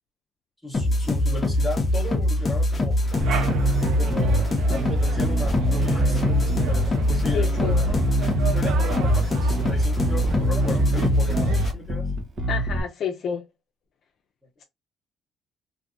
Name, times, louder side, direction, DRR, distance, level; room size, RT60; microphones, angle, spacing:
voice 1, 0.6-3.0 4.0-8.0 8.5-12.1, left 2 dB, ahead, 1.0 m, -35 dB
sound 1, 0.7-11.7, left 1 dB, 25° left, 0.8 m, -23 dB
sound 2, 3.1-11.7, right 6 dB, 75° right, 0.7 m, -36 dB
Bass guitar, 3.2-12.8, right 2 dB, 35° right, 0.9 m, -26 dB
voice 2, 7.3-7.8 12.5-13.4, left 7 dB, 55° left, 0.5 m, -29 dB
3.3 x 2.6 x 2.6 m
cardioid pair, 130°, 0 cm